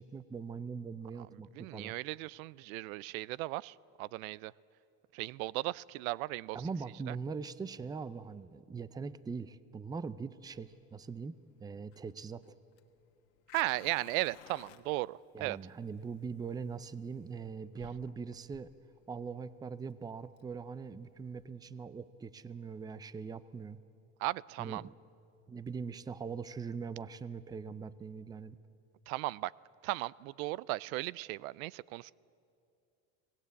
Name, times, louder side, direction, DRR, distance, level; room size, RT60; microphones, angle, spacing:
voice 1, 0.0-1.9 6.5-11.3 11.6-12.4 15.3-18.7 19.1-23.8 24.6-24.9 25.5-28.6, right 5 dB, 10° right, 16 dB, 0.4 m, -41 dB
voice 2, 1.5-4.5 5.1-6.6 7.1-7.2 13.5-15.6 24.2-24.9 29.1-29.5 29.8-32.1, right 19 dB, 90° right, 24 dB, 0.5 m, -36 dB
Fire, 10.4-21.5, left 13 dB, 85° left, 1.5 m, -59 dB
25.0 x 18.5 x 8.2 m, 2.5 s
supercardioid pair, 125°, 41 cm